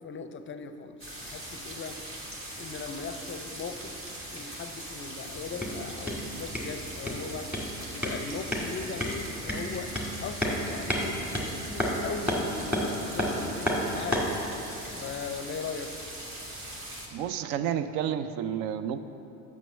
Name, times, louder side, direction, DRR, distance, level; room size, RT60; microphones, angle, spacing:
voice 1, 0.0-2.0 2.5-4.0 4.3-7.5 7.9-9.9 10.2-14.3 14.9-15.9, left 5 dB, 30° left, 9 dB, 0.5 m, -39 dB
sound 1, 1.0-17.1, right 1 dB, 35° right, 2.0 m, -41 dB
sound 2, 5.3-14.4, equal, 5° right, 2.0 m, -32 dB
voice 2, 17.1-19.0, right 9 dB, 70° right, 11 dB, 0.5 m, -30 dB
6.4 x 6.0 x 7.0 m, 2.9 s
hypercardioid pair, 65°, 39 cm